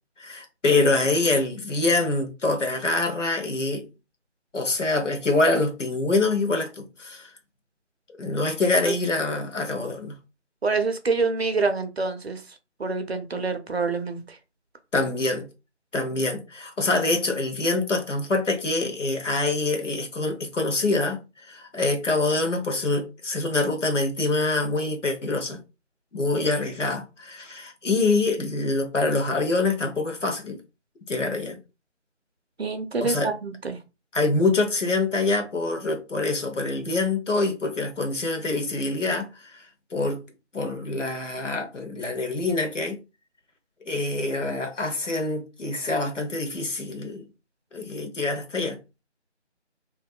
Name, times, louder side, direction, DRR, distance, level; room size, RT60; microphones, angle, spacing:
voice 1, 0.2-3.9 4.5-7.3 8.2-10.1 14.9-15.5 15.9-25.6 26.1-30.6 31.1-31.6 33.0-33.3 34.1-39.6 39.9-40.2 40.5-43.0 43.8-47.3 47.7-48.8, left 3 dB, 85° left, 0.9 m, -25 dB
voice 2, 10.6-12.4 12.8-14.4 32.6-33.8, right 4 dB, 60° right, 0.5 m, -26 dB
2.6 x 2.2 x 2.3 m
figure-of-eight pair, 175°, 36 cm